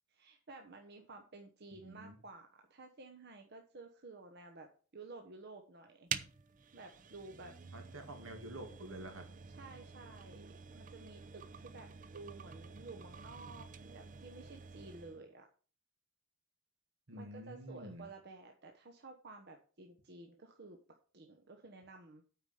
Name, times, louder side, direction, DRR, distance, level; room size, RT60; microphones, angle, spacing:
voice 1, 0.1-4.7 4.9-6.1 6.7-7.5 9.5-15.4 17.1-20.8 21.1-22.2, right 3 dB, 55° right, 3 dB, 1.1 m, -53 dB
voice 2, 1.7-2.2 7.7-9.2 17.1-18.0, right 1 dB, 80° right, 5 dB, 2.3 m, -48 dB
sound 1, 6.1-15.2, right 6 dB, 40° right, 0.7 m, -48 dB
8.9 x 5.1 x 7.0 m, 0.40 s
head